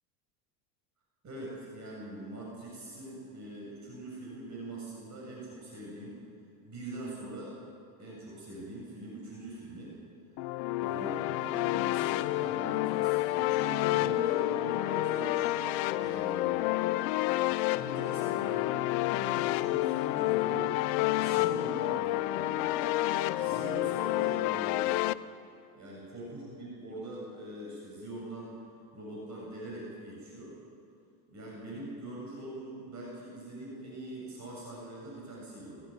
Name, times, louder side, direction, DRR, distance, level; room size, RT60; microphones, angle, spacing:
voice 1, 1.2-6.2 6.6-7.5 8.0-9.9 10.8-15.6 15.9-16.9 17.3-17.4 17.8-20.8 21.2-25.0 25.7-28.5 28.9-30.6 31.3-35.8, right 1 dB, 35° right, -3 dB, 7.6 m, -43 dB
sound 1, 10.4-25.1, left 17 dB, 65° left, 0.8 m, -29 dB
21.0 x 15.0 x 9.5 m, 2.5 s
hypercardioid pair, 90°, 46 cm